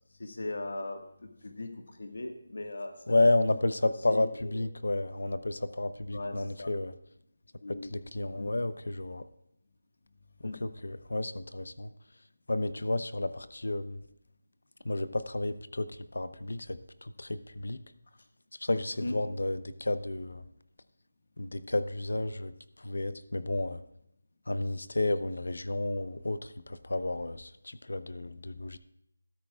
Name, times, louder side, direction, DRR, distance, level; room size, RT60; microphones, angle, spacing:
voice 1, 0.2-1.7 2.0-3.3 3.8-4.7 6.1-6.7 7.6-7.9 8.3-8.5 10.4-10.7 19.0-19.1, left 2 dB, 65° left, 5 dB, 1.6 m, -39 dB
voice 2, 3.1-6.9 7.7-9.3 10.4-11.9 12.5-14.0 14.8-17.8 18.6-20.5 21.4-23.8 24.5-28.8, left 2 dB, 85° left, 13 dB, 0.7 m, -31 dB
13.0 x 13.0 x 2.4 m, 0.75 s
figure-of-eight pair, 175°, 0 cm